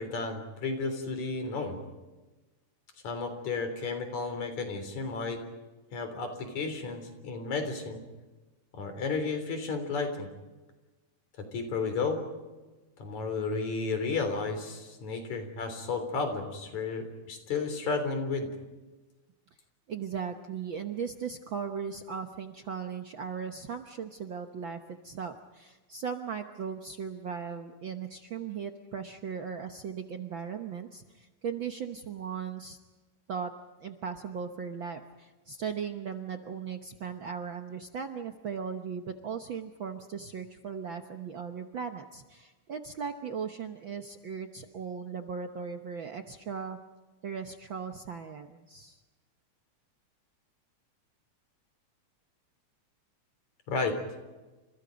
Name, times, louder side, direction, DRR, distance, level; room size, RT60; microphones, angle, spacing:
voice 1, 0.0-1.8 3.0-5.4 5.9-8.0 8.7-10.3 11.4-12.2 13.0-18.5 53.7-54.0, left 4 dB, 70° left, 7 dB, 4.8 m, -32 dB
voice 2, 19.9-32.8 33.3-33.5 33.8-46.8 47.2-49.0, right 6 dB, 55° right, 6 dB, 1.4 m, -38 dB
30.0 x 27.0 x 5.2 m, 1.2 s
omnidirectional pair, 3.4 m